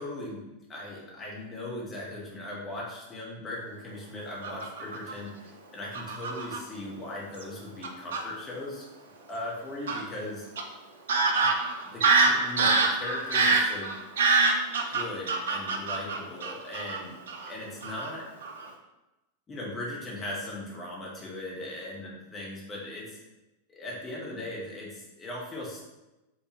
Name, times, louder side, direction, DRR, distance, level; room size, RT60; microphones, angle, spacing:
voice 1, 0.0-8.8 9.3-10.5 11.3-11.5 11.8-13.9 14.9-18.3 19.5-23.2 23.7-25.8, left 1 dB, 20° left, -3 dB, 1.2 m, -38 dB
Fowl / Bird vocalization bird call bird song, 4.4-5.1 5.9-6.6 7.4-7.5 7.8-8.2 9.9-10.0 10.6-10.7 11.1-17.0 17.3-17.5 17.8-18.1 18.4-18.7, right 4 dB, 65° right, 0.5 m, -25 dB
4.5 x 3.4 x 3.0 m, 1.0 s
figure-of-eight pair, 90°, 0 cm